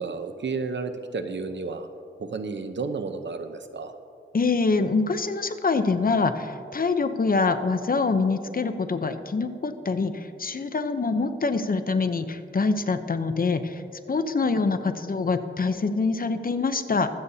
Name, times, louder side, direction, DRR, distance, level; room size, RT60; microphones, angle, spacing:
voice 1, 0.0-1.9 2.2-3.9, right 4 dB, 65° right, 8 dB, 0.8 m, -32 dB
voice 2, 4.3-13.8 14.1-17.1, left 4 dB, 45° left, 9 dB, 0.7 m, -25 dB
22.5 x 8.2 x 2.8 m, 2.5 s
wide cardioid pair, 90°, 21 cm